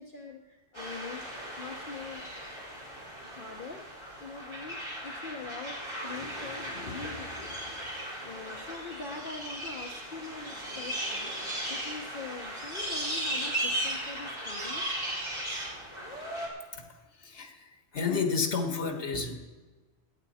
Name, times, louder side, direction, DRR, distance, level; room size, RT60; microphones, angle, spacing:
voice 1, 0.0-2.2 3.2-4.8 5.0-14.8, left 4 dB, 50° left, 2 dB, 1.0 m, -43 dB
sound 1, 0.7-16.5, right 1 dB, 25° right, 4.2 m, -37 dB
voice 2, 17.2-17.6 17.9-19.3, left 5 dB, 85° left, 6 dB, 1.6 m, -30 dB
17.5 x 11.5 x 4.2 m, 1.3 s
omnidirectional pair, 1.1 m